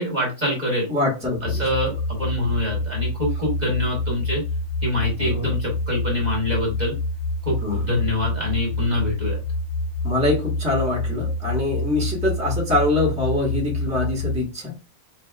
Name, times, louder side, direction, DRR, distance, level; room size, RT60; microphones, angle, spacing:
voice 1, 0.0-0.9 1.6-4.4 4.8-6.9 7.4-9.4, left 1 dB, 30° right, -2 dB, 1.3 m, -25 dB
voice 2, 0.9-1.6 5.2-5.5 7.6-8.0 10.0-14.7, left 2 dB, 5° right, -2 dB, 1.1 m, -24 dB
sound 1, 1.4-14.4, left 2 dB, 60° left, 1.0 m, -27 dB
5.5 x 2.7 x 2.3 m, 0.30 s
omnidirectional pair, 1.6 m